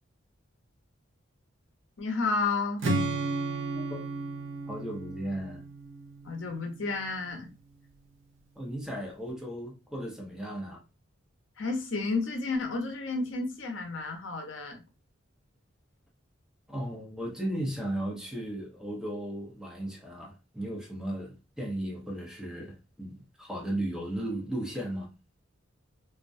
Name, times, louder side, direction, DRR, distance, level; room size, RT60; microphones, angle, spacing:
voice 1, 2.0-2.8 6.2-7.5 11.6-14.8, left 3 dB, 65° left, 0.6 m, -31 dB
Strum, 2.8-6.9, right 2 dB, 75° right, 0.6 m, -33 dB
voice 2, 4.7-5.6 8.6-10.8 16.7-25.1, right 1 dB, 5° right, 0.6 m, -36 dB
2.3 x 2.1 x 2.5 m
head